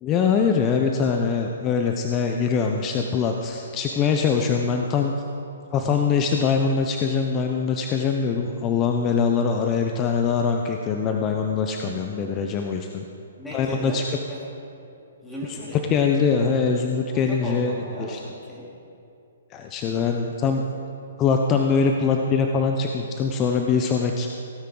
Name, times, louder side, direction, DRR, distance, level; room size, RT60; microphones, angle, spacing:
voice 1, 0.0-5.1 5.7-13.0 13.5-14.0 15.9-17.7 18.0-18.2 19.5-20.6 21.2-24.3, left 5 dB, 25° left, 3 dB, 0.6 m, -23 dB
voice 2, 13.4-14.0 14.3-14.4 15.2-15.9 17.1-18.7, equal, 5° left, -7 dB, 3.1 m, -36 dB
17.0 x 9.5 x 3.9 m, 2.7 s
hypercardioid pair, 145°, 0 cm